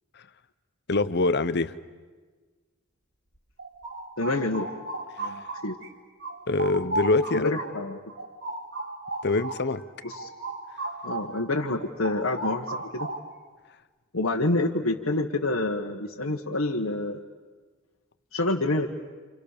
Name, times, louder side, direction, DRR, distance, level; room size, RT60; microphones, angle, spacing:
voice 1, 0.9-1.7 5.2-5.4 6.5-7.5 9.2-9.8, left 2 dB, 55° left, 13 dB, 1.0 m, -24 dB
sound 1, 3.3-5.9 6.2-11.4 11.7-13.5, right 2 dB, 60° right, 4.1 m, -35 dB
voice 2, 4.2-4.7 5.2-5.8 7.3-8.0 10.0-10.3 11.0-13.1 14.1-17.2 18.3-18.9, left 2 dB, 80° left, -2 dB, 1.6 m, -27 dB
29.0 x 28.5 x 6.9 m, 1.4 s
head